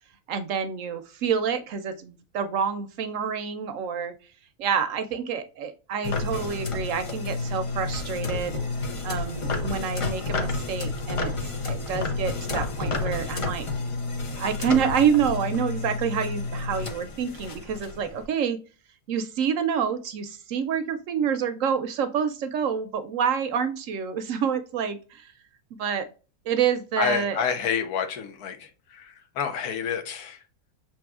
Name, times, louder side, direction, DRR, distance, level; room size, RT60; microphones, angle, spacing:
voice 1, 0.3-4.1 4.6-8.6 9.0-11.3 11.6-13.7 14.2-18.6 19.1-25.3 25.8-26.1 26.5-27.4, right 7 dB, 70° right, 0.8 m, -27 dB
sound 1, 6.0-18.2, left 3 dB, 55° left, 0.3 m, -30 dB
voice 2, 27.0-30.4, left 7 dB, 80° left, 1.3 m, -29 dB
6.1 x 3.0 x 2.3 m
omnidirectional pair, 1.6 m